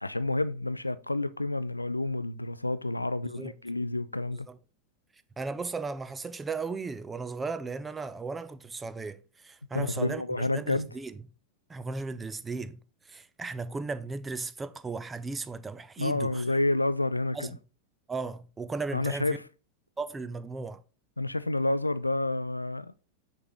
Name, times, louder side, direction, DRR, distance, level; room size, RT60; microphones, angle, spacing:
voice 1, 0.0-4.5 9.7-10.9 16.0-17.5 18.9-19.4 21.2-22.9, left 2 dB, 85° left, 0.4 m, -29 dB
voice 2, 3.2-3.5 4.5-4.6 5.4-11.2 11.7-12.8 13.1-16.4 17.3-17.6 18.1-19.4 20.0-20.8, right 4 dB, 15° right, 0.5 m, -36 dB
6.4 x 4.6 x 3.8 m
figure-of-eight pair, 90°, 0 cm